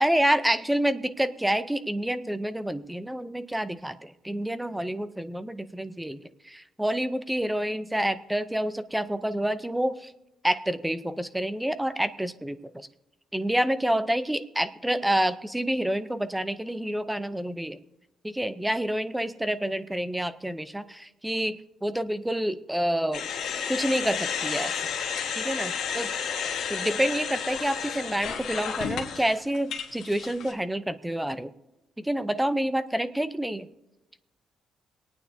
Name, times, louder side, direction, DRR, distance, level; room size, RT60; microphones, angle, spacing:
voice 1, 0.0-6.2 6.4-10.1 10.4-12.9 13.3-17.8 18.2-23.3 23.7-24.8 25.3-26.1 26.7-31.5 32.0-33.7, right 1 dB, 5° right, 12 dB, 0.5 m, -28 dB
sound 1, 23.1-30.5, left 7 dB, 80° left, 1.3 m, -32 dB
27.5 x 9.2 x 2.7 m, 0.93 s
cardioid pair, 90°, 0 cm